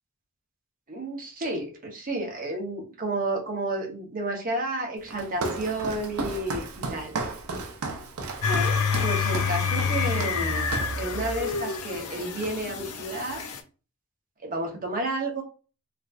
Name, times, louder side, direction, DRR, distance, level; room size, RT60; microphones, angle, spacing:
voice 1, 0.9-7.2 8.4-10.7 11.0-13.4 14.4-15.4, right 2 dB, 40° right, 1 dB, 1.0 m, -31 dB
Walk footsteps, 5.1-11.0 11.5-11.8 12.1-12.9, right 3 dB, 85° right, 0.6 m, -34 dB
sound 1, 8.4-13.6, left 5 dB, 90° left, 0.6 m, -28 dB
3.3 x 2.9 x 2.5 m, 0.34 s
head